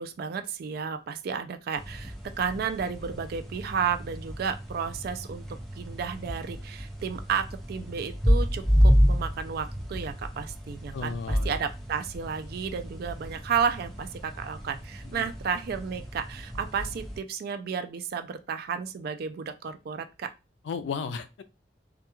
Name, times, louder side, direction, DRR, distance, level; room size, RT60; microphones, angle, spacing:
voice 1, 0.0-5.5 5.8-20.3, right 6 dB, 60° right, 9 dB, 0.3 m, -32 dB
sound 1, 1.7-17.2, equal, ahead, 0.6 m, -29 dB
voice 2, 10.9-11.5 15.0-15.3 20.6-21.4, left 5 dB, 85° left, 11 dB, 0.3 m, -34 dB
2.2 x 2.2 x 2.9 m, 0.29 s
head